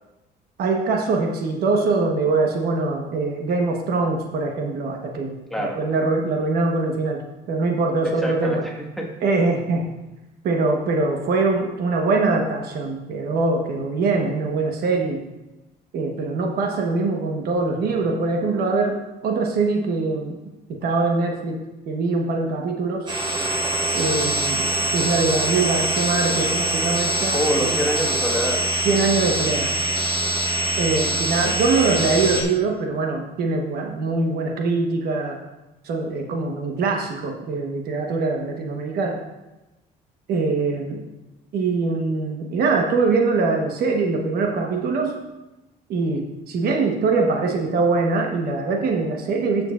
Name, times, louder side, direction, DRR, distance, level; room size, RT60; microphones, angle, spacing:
voice 1, 0.6-7.2 7.5-8.6 9.2-9.9 10.4-15.3 15.9-19.0 19.2-20.4 20.7-23.1 23.9-27.8 28.8-29.7 30.8-35.4 35.8-39.2 40.3-41.0 41.5-45.2 45.9-49.7, right 3 dB, 65° right, 2 dB, 1.2 m, -23 dB
voice 2, 5.5-5.8 8.0-9.0 27.3-28.6, equal, ahead, -2 dB, 1.6 m, -26 dB
sound 1, 23.1-32.4, right 1 dB, 30° right, 1.5 m, -23 dB
13.0 x 6.6 x 2.5 m, 1.0 s
cardioid pair, 110°, 17 cm